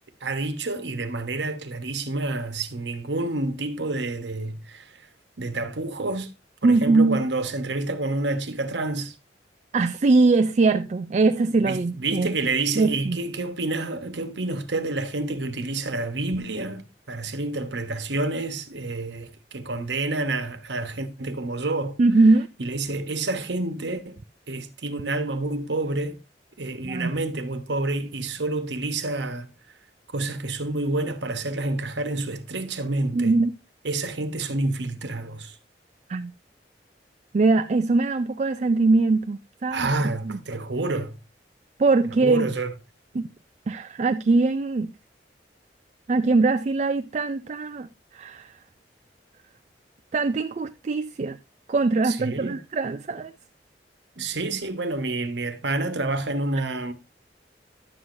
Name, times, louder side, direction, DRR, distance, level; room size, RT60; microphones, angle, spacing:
voice 1, 0.2-5.0 5.4-6.3 6.6-9.1 11.5-22.0 22.6-24.2 24.5-26.2 26.6-29.5 30.1-33.3 33.8-35.5 39.7-41.1 42.2-42.7 52.0-52.6 54.2-56.9, right 2 dB, 80° right, 1.2 m, -28 dB
voice 2, 6.6-7.2 9.7-12.3 12.8-13.2 22.0-22.5 26.8-27.2 33.1-33.5 36.1-36.3 37.3-40.4 41.8-42.5 43.1-43.3 43.7-44.9 46.1-47.9 48.1-48.5 50.1-51.4 51.7-53.3, right 3 dB, 40° right, 0.4 m, -22 dB
11.0 x 7.9 x 2.6 m
head